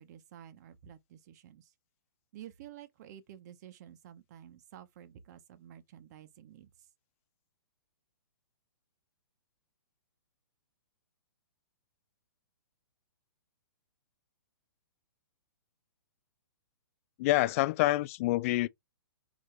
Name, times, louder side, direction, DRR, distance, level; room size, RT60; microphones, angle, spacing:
voice 1, 0.0-1.7 2.3-6.7, right 11 dB, 45° right, 0.8 m, -51 dB
voice 2, 17.2-18.7, left 17 dB, 35° left, 0.3 m, -27 dB
4.8 x 2.7 x 3.2 m
hypercardioid pair, 125°, 13 cm